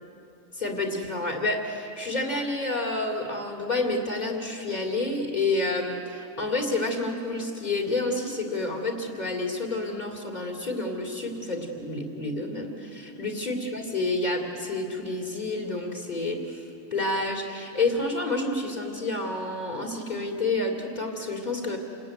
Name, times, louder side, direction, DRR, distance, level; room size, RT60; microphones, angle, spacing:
voice 1, 0.5-16.6 16.9-21.8, left 2 dB, 30° left, 1 dB, 3.0 m, -29 dB
29.0 x 20.5 x 9.1 m, 2.6 s
omnidirectional pair, 1.5 m